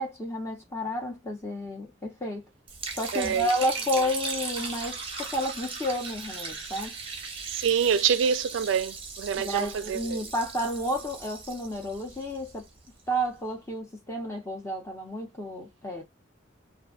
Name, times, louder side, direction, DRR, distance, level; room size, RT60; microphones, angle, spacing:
voice 1, 0.0-2.5 2.9-6.9 9.4-12.7 13.1-16.0, equal, 15° left, 0.8 m, -31 dB
Liquid, 2.7-12.9, right 4 dB, 25° right, 0.7 m, -38 dB
voice 2, 3.1-3.5 4.0-4.1 7.5-10.2, right 7 dB, 70° right, 0.3 m, -26 dB
2.5 x 2.3 x 2.3 m
head